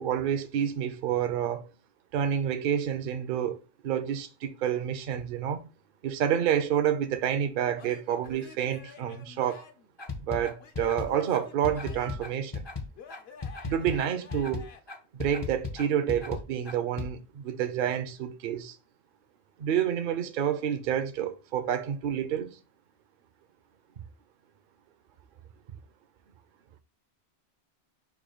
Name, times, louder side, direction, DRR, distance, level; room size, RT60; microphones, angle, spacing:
voice 1, 0.0-1.7 2.1-5.7 6.0-9.7 10.2-12.6 13.6-14.7 15.1-18.8 19.6-22.6, right 9 dB, 60° right, 0.6 m, -29 dB
Male speech man speaking / Yell / Laughter, 7.8-9.9 10.6-12.3 13.0-14.8, left 6 dB, 70° left, 0.9 m, -50 dB
sound 1, 10.0-17.1, left 4 dB, 35° left, 0.5 m, -36 dB
4.8 x 2.2 x 4.8 m
omnidirectional pair, 1.1 m